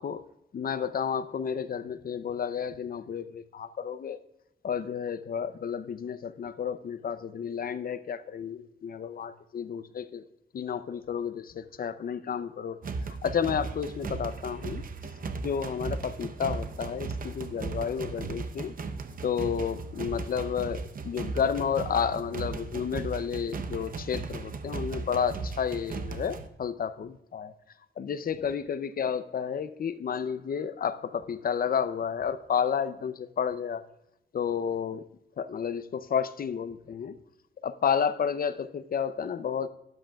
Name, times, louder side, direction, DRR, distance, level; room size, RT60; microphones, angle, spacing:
voice 1, 0.5-4.2 4.6-10.2 10.5-12.8 13.2-14.8 15.4-18.7 19.2-27.5 28.0-33.8 34.3-35.0 35.4-37.2 37.6-39.7, left 7 dB, 50° left, 13 dB, 0.6 m, -31 dB
sound 1, 12.8-26.5, right 4 dB, 45° right, 0.7 m, -37 dB
12.5 x 11.5 x 2.3 m, 0.87 s
wide cardioid pair, 170°, 19 cm